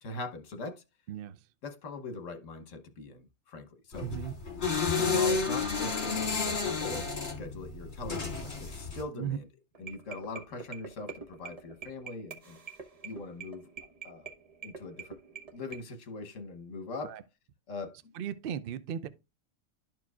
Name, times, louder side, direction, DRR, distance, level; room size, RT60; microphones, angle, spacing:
voice 1, 0.0-0.8 1.6-4.1 5.0-9.5 9.8-12.6 13.0-13.7 14.0-14.3 14.6-15.2 15.5-17.2 17.7-18.0, left 3 dB, 70° left, 1.4 m, -41 dB
sound 1, 3.9-9.0, left 5 dB, 55° left, 2.2 m, -31 dB
voice 2, 4.0-4.3 9.1-9.4 17.0-17.2 18.1-19.1, right 9 dB, 65° right, 0.6 m, -36 dB
sound 2, 9.7-15.8, right 6 dB, 30° right, 0.9 m, -45 dB
12.0 x 4.5 x 2.4 m
omnidirectional pair, 1.4 m